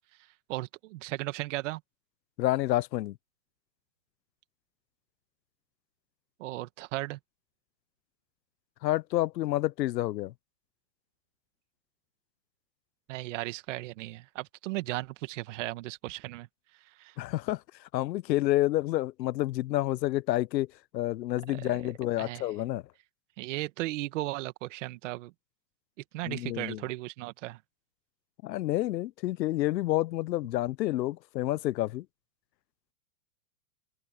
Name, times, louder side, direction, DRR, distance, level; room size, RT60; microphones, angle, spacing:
voice 1, 0.5-1.8 6.4-7.2 13.1-16.5 16.8-17.2 21.5-21.7 22.2-22.5 23.4-25.3 26.1-27.6, right 18 dB, 45° right, 1.7 m, -36 dB
voice 2, 2.4-3.2 8.8-10.3 17.2-17.6 17.9-20.7 20.9-22.8 26.2-26.8 28.4-32.0, left 16 dB, 90° left, 0.8 m, -29 dB
open air
supercardioid pair, 160°, 49 cm